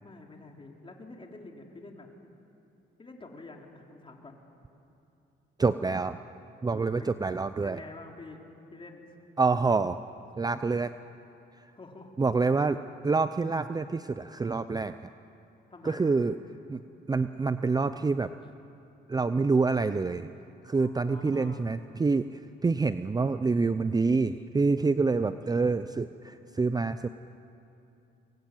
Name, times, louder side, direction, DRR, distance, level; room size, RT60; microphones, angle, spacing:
voice 1, 0.0-2.1 3.0-4.4 6.7-7.2 7.6-8.4 8.7-9.1 11.8-12.1 15.7-16.4 20.7-21.6 24.8-25.4, left 3 dB, 25° left, 1 dB, 3.8 m, -47 dB
voice 2, 5.6-6.2 6.6-7.8 9.4-10.0 10.4-10.9 12.2-12.8 13.0-14.9 15.8-16.4 16.7-16.8 17.1-18.3 19.1-20.3 20.6-27.1, right 4 dB, 20° right, 11 dB, 0.6 m, -27 dB
24.0 x 21.0 x 9.3 m, 2.8 s
cardioid pair, 90°, 20 cm